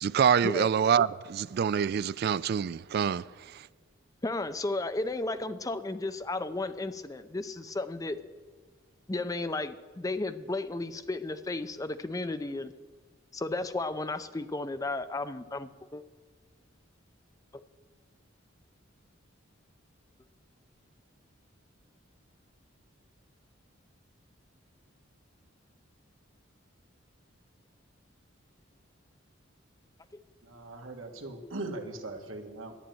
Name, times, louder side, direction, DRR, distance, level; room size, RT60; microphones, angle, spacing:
voice 1, 0.0-3.2, right 7 dB, 50° right, 0.3 m, -26 dB
voice 2, 4.2-8.2 9.1-12.7 13.3-16.0, left 2 dB, 15° left, 0.5 m, -33 dB
voice 3, 30.4-32.7, right 2 dB, 75° right, 1.6 m, -40 dB
11.5 x 9.1 x 8.9 m
head